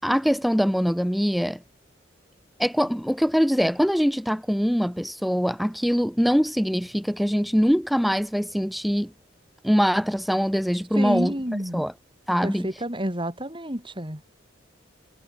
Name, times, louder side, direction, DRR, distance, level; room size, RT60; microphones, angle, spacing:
voice 1, 0.0-1.6 2.6-9.1 9.6-11.3 11.7-11.9 12.3-12.7, equal, ahead, 4.8 m, -23 dB
voice 2, 11.0-11.9 12.4-14.2, equal, 25° right, 6.2 m, -29 dB
head